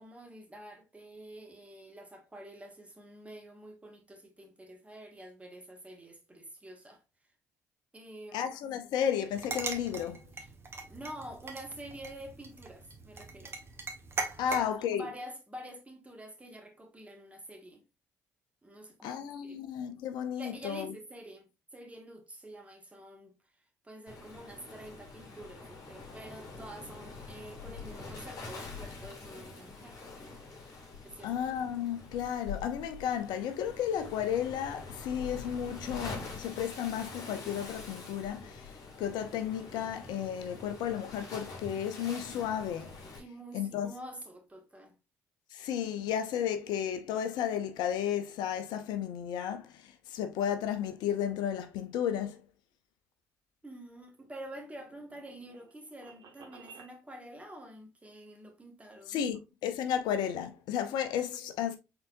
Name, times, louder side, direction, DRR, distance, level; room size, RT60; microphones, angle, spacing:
voice 1, 0.0-7.0 7.9-8.5 10.4-10.5 10.9-13.6 14.4-17.8 18.6-19.6 20.4-23.4 23.8-30.0 31.0-31.3 43.2-45.0 53.6-59.3, right 1 dB, 15° right, 1.7 m, -48 dB
voice 2, 8.3-10.3 14.4-15.1 19.0-20.9 31.2-38.7 39.0-43.0 43.5-43.9 45.5-52.4 59.1-61.8, left 9 dB, 70° left, 0.6 m, -33 dB
sound 1, 9.3-14.7, right 3 dB, 35° right, 1.3 m, -40 dB
Waves surf, 24.1-43.2, left 4 dB, 50° left, 2.3 m, -45 dB
sound 2, 53.9-56.9, right 5 dB, 60° right, 1.4 m, -56 dB
4.5 x 3.8 x 2.5 m
hypercardioid pair, 55°, 8 cm